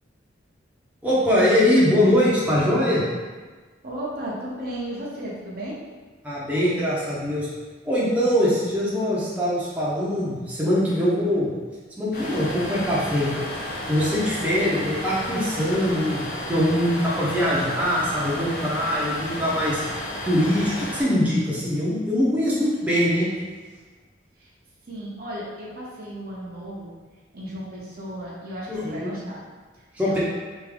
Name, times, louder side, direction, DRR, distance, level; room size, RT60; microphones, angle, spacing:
voice 1, 1.0-3.0 6.2-7.5 7.8-11.5 12.0-13.4 13.9-16.2 16.5-19.8 20.2-23.3 28.7-29.1 30.0-30.2, equal, 10° right, -9 dB, 0.7 m, -22 dB
voice 2, 3.8-5.8 24.4-24.5 24.9-26.9 27.3-29.4 29.7-30.2, right 1 dB, 50° right, -5 dB, 0.7 m, -34 dB
sound 1, 12.1-21.0, left 1 dB, 55° left, 0.8 m, -33 dB
3.5 x 2.6 x 3.4 m, 1.4 s
head